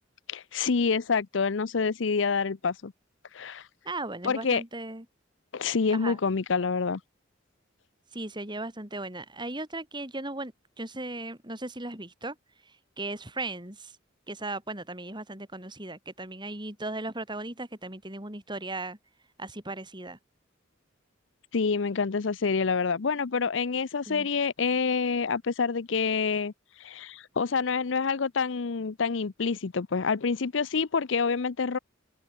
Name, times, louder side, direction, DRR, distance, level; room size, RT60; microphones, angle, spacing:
voice 1, 0.3-2.9 3.3-3.6 4.2-4.6 5.5-7.0 21.5-26.5 26.8-31.8, left 5 dB, 70° left, 0.6 m, -27 dB
voice 2, 3.8-5.0 5.9-6.2 8.1-10.5 10.8-12.4 13.0-13.9 14.3-19.0 19.4-20.2 24.1-24.3, right 2 dB, 25° right, 6.1 m, -37 dB
head